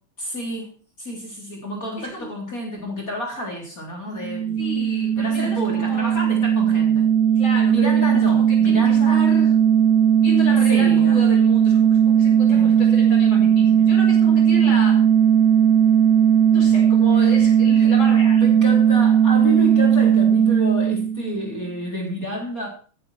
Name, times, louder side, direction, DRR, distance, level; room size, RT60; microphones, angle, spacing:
voice 1, 0.2-0.7 1.0-4.6 5.2-7.1 7.6-9.2 10.7-11.2 12.5-12.9 17.3-17.4 17.8-17.9 18.4-22.7, left 1 dB, 30° left, 4.0 m, -30 dB
voice 2, 2.0-2.3 4.6-6.1 7.4-9.6 10.2-15.0 16.5-18.4, left 2 dB, 60° left, 6.4 m, -32 dB
sound 1, 4.1-21.6, right 8 dB, 35° right, 1.9 m, -17 dB
17.0 x 10.5 x 4.4 m
omnidirectional pair, 3.4 m